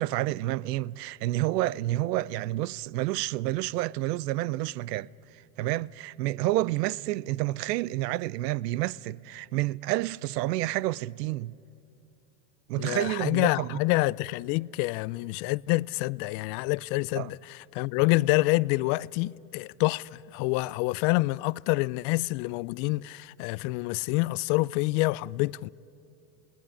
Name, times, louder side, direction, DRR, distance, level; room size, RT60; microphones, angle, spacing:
voice 1, 0.0-5.1 5.6-11.5 12.7-13.8 17.2-17.3, right 17 dB, 90° right, 0.6 m, -29 dB
voice 2, 12.8-25.7, left 22 dB, 60° left, 0.5 m, -27 dB
23.0 x 18.0 x 9.7 m
supercardioid pair, 95°, 47 cm